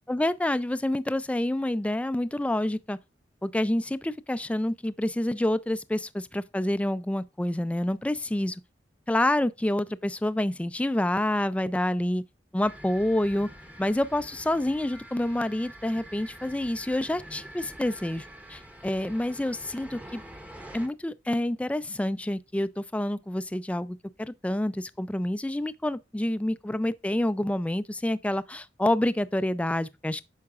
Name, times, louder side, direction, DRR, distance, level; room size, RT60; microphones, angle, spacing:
voice 1, 0.1-3.0 3.4-8.6 9.1-12.2 12.5-13.5 13.8-18.2 18.5-20.2 20.7-30.2, left 1 dB, 10° left, 0.3 m, -28 dB
sound 1, 12.6-20.9, right 1 dB, 10° right, 0.8 m, -46 dB
8.6 x 5.7 x 2.4 m
head